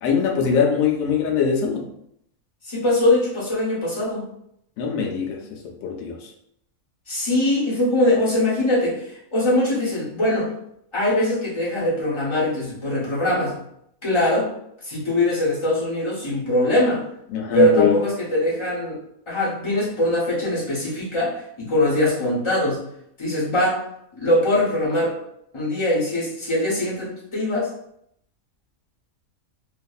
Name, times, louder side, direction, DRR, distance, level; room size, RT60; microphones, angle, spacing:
voice 1, 0.0-1.9 4.8-6.3 17.3-18.0, left 7 dB, 75° left, 0 dB, 0.9 m, -22 dB
voice 2, 2.6-4.3 7.1-10.5 10.9-13.5 14.0-14.5 14.8-17.0 17.5-19.0 19.3-22.8 23.2-23.8 24.2-25.1 25.5-27.7, left 1 dB, 25° left, -6 dB, 0.7 m, -22 dB
2.6 x 2.4 x 2.3 m, 0.74 s
omnidirectional pair, 1.5 m